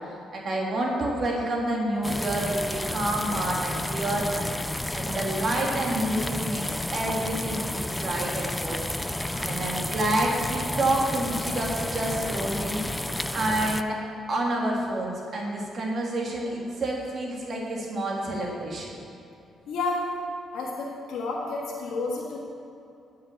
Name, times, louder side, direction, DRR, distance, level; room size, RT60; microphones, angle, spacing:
voice 1, 0.3-4.5 4.9-6.6 6.9-8.8 9.4-12.8 13.3-14.0 14.3-18.9, right 1 dB, 50° right, -2 dB, 1.7 m, -28 dB
sound 1, 2.0-13.8, left 1 dB, 10° left, 0.3 m, -31 dB
voice 2, 9.1-9.6 19.7-20.1 20.5-22.4, left 3 dB, 80° left, -3 dB, 1.3 m, -31 dB
9.9 x 5.6 x 6.9 m, 2.7 s
cardioid pair, 90°, 0 cm